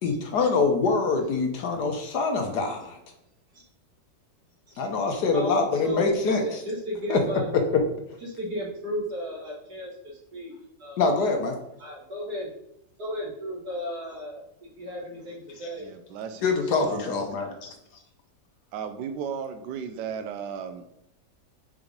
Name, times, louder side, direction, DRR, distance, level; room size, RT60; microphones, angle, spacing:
voice 1, 0.0-3.0 4.8-6.4 7.1-7.2 11.0-11.6 16.4-17.7, left 4 dB, 70° left, 4 dB, 1.4 m, -25 dB
voice 2, 5.3-7.5 8.2-11.1 11.8-12.5 13.0-15.9 17.6-17.7, equal, 60° right, -4 dB, 2.3 m, -34 dB
voice 3, 15.8-17.2 18.7-20.9, right 7 dB, 80° right, 7 dB, 1.2 m, -35 dB
5.2 x 4.8 x 5.2 m, 0.79 s
omnidirectional pair, 1.9 m